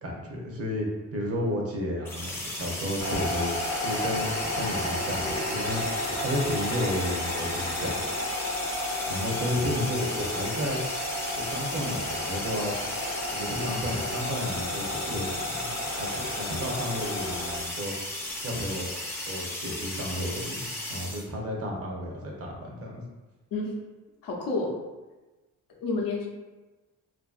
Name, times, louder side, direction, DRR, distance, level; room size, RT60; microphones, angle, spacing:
voice 1, 0.0-5.8 6.2-8.0 9.1-10.8 11.4-12.8 13.3-17.9 18.4-18.9 19.3-23.0, equal, 45° right, -1 dB, 0.6 m, -32 dB
sound 1, 2.0-21.2, left 1 dB, 10° left, 0.4 m, -35 dB
sound 2, 3.0-17.6, left 1 dB, 45° left, 0.7 m, -33 dB
voice 2, 24.2-24.8 25.7-26.3, left 3 dB, 80° left, 0 dB, 0.6 m, -29 dB
2.7 x 2.5 x 2.3 m, 1.1 s
cardioid pair, 120°, 33 cm